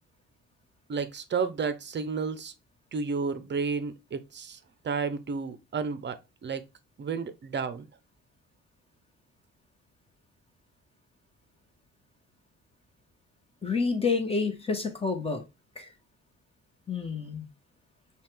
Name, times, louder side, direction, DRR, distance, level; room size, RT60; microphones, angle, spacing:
voice 1, 0.9-2.5 2.9-4.6 4.8-6.2 6.4-6.6 7.0-7.9, right 5 dB, 35° right, 0.7 m, -31 dB
voice 2, 13.6-15.4 15.8-15.9 16.9-17.5, left 4 dB, 20° left, 1.2 m, -29 dB
5.5 x 2.4 x 3.3 m
cardioid pair, 90°, 30 cm